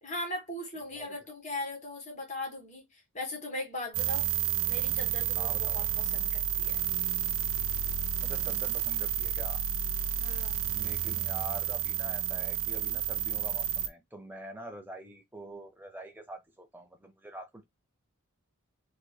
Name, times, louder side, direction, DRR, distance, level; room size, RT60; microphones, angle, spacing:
voice 1, 0.0-4.3 4.7-6.8 10.2-10.7, left 1 dB, 30° left, 1.6 m, -39 dB
sound 1, 3.9-13.9, right 10 dB, 60° right, 0.5 m, -31 dB
voice 2, 5.3-5.9 8.2-9.6 10.7-17.6, right 1 dB, 10° right, 0.7 m, -45 dB
3.3 x 3.1 x 2.2 m
head